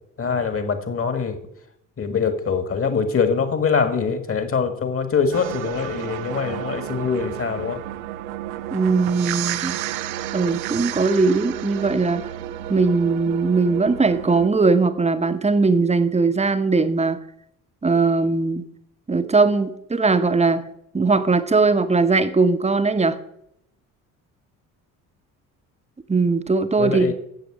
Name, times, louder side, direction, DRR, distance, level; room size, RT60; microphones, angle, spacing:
voice 1, 0.2-1.4 2.0-7.8 26.8-27.1, left 5 dB, 30° left, 9 dB, 1.7 m, -23 dB
sound 1, 5.3-14.5, right 13 dB, 65° right, 0.8 m, -31 dB
voice 2, 8.7-9.8 10.3-12.2 12.7-17.2 17.8-18.6 19.1-20.6 20.9-23.2 26.1-27.1, right 4 dB, 15° right, 10 dB, 1.0 m, -19 dB
13.0 x 7.8 x 5.1 m, 0.77 s
figure-of-eight pair, 50°, 45 cm